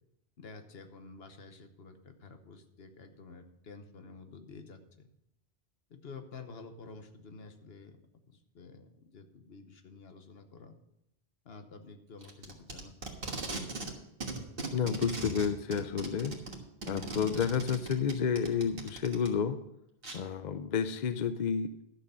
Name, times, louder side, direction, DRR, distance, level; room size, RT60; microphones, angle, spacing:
voice 1, 0.4-5.1 5.9-8.0 8.3-10.7 11.4-13.2, left 4 dB, 70° left, 7 dB, 1.2 m, -50 dB
Packing tape duct tape, 12.2-13.9 14.2-19.3 20.0-20.2, right 3 dB, 60° right, 1.7 m, -39 dB
voice 2, 14.7-16.3 16.9-19.6 20.1-21.7, left 7 dB, 50° left, 11 dB, 0.7 m, -30 dB
11.5 x 6.8 x 5.5 m, 0.81 s
omnidirectional pair, 1.1 m